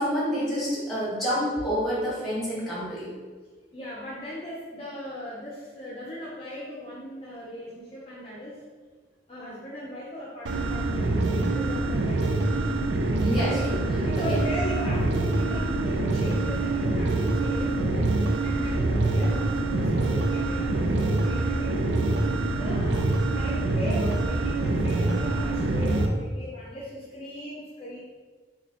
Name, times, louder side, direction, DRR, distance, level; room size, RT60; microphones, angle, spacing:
voice 1, 0.0-3.1 13.2-13.8 14.2-14.4, equal, ahead, -9 dB, 1.5 m, -28 dB
voice 2, 3.7-8.6 9.3-12.3 13.5-13.6 14.0-18.1 18.4-21.9 22.5-28.0, left 1 dB, 30° left, -6 dB, 0.6 m, -38 dB
sound 1, 10.5-26.1, right 2 dB, 90° right, 0.4 m, -25 dB
4.0 x 2.9 x 2.9 m, 1.4 s
head